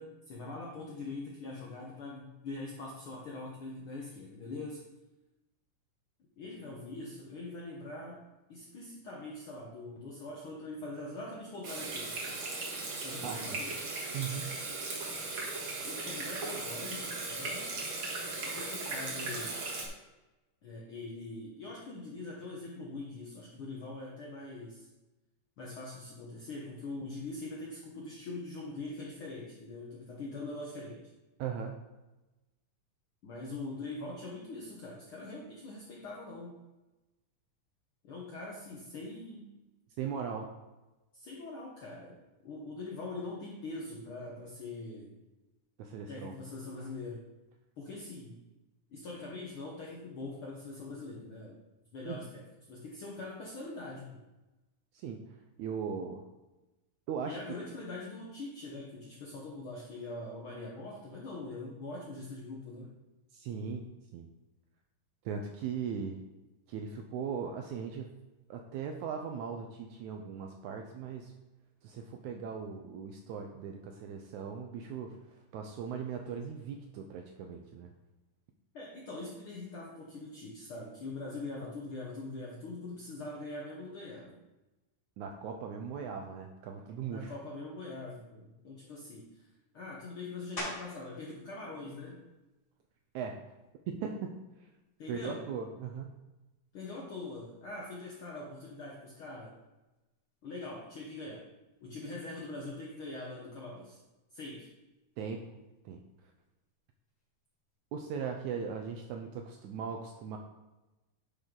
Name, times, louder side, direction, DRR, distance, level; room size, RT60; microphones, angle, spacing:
voice 1, 0.0-4.8 6.4-8.2 8.5-12.1 13.0-13.8 15.8-17.8 18.4-19.6 20.6-24.9 25.6-31.0 33.2-36.6 38.0-39.5 41.1-45.2 46.1-47.2 47.8-48.4 48.9-51.6 51.9-54.2 57.3-62.9 78.7-84.4 87.1-92.2 95.0-95.5 96.7-99.5 100.4-101.5 101.8-104.0 104.3-104.7, left 2 dB, 85° left, -2 dB, 1.1 m, -43 dB
Water tap faucet / Sink (filling or washing), 11.6-19.9, right 3 dB, 50° right, 1.8 m, -37 dB
voice 2, 13.2-13.6 14.1-14.5 31.4-31.8 40.0-40.5 45.8-46.3 52.1-52.2 54.9-56.2 57.1-57.4 63.3-63.9 64.1-64.3 65.3-66.2 66.7-68.1 68.5-71.3 71.8-77.9 85.2-87.3 93.1-93.4 93.9-94.3 95.1-96.1 105.2-105.5 105.9-106.0 107.9-110.4, right 6 dB, 80° right, 3 dB, 1.8 m, -39 dB
sound 1, 90.6-91.2 91.7-96.1 96.7-101.8 102.1-107.8, left 1 dB, 30° left, 2.6 m, -50 dB
10.5 x 5.1 x 3.8 m, 1.1 s
omnidirectional pair, 3.9 m